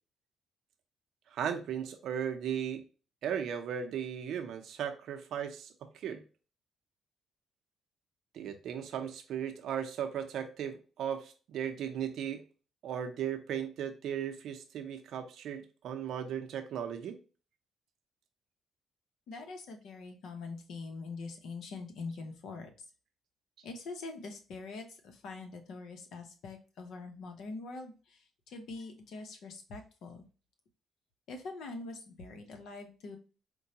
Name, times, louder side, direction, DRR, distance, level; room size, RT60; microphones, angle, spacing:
voice 1, 1.3-2.8 3.2-6.2 8.3-12.4 12.8-17.2, right 8 dB, 75° right, 7 dB, 0.6 m, -36 dB
voice 2, 19.3-22.9 23.6-30.3 31.3-33.2, left 3 dB, 75° left, 5 dB, 0.9 m, -44 dB
4.6 x 2.2 x 2.8 m, 0.35 s
cardioid pair, 90°, 0 cm